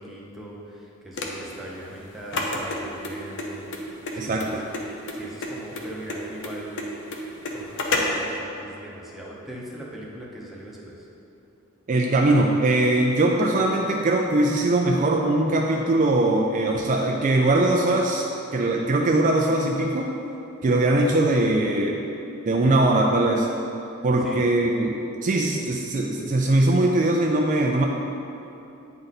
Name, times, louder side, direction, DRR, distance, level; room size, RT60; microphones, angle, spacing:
voice 1, 0.0-3.7 3.9-4.6 4.9-6.9 7.5-11.1 24.2-24.5, right 1 dB, ahead, -5 dB, 0.8 m, -40 dB
sound 1, 1.1-8.3, left 2 dB, 55° left, 0.7 m, -30 dB
voice 2, 4.2-4.6 11.9-18.3 18.5-20.1 20.6-22.0 22.5-23.5 24.0-27.9, right 2 dB, 35° right, 0 dB, 0.4 m, -21 dB
9.1 x 3.9 x 4.1 m, 2.9 s
head